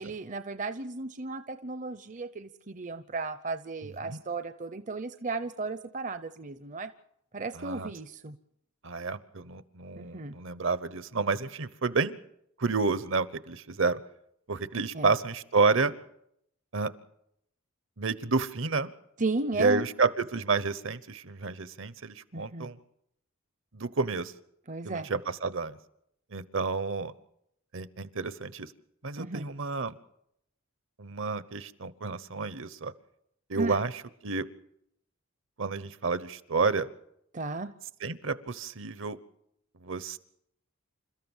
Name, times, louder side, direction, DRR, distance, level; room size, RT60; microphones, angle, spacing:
voice 1, 0.0-6.9 7.3-8.3 9.9-10.3 14.9-15.1 19.2-19.9 22.3-22.7 24.7-25.1 29.2-29.5 33.6-33.8 37.3-37.7, right 3 dB, 35° right, 10 dB, 0.7 m, -34 dB
voice 2, 7.5-7.9 8.8-12.2 12.6-14.0 14.5-15.9 16.7-16.9 18.0-18.9 19.5-22.8 23.7-24.3 24.8-25.8 26.3-27.1 27.7-28.7 29.0-30.0 31.0-32.9 33.5-33.9 34.2-34.5 35.6-36.9 38.0-39.2 39.8-40.2, right 4 dB, 60° right, 15 dB, 1.0 m, -30 dB
28.5 x 13.5 x 7.3 m, 0.76 s
head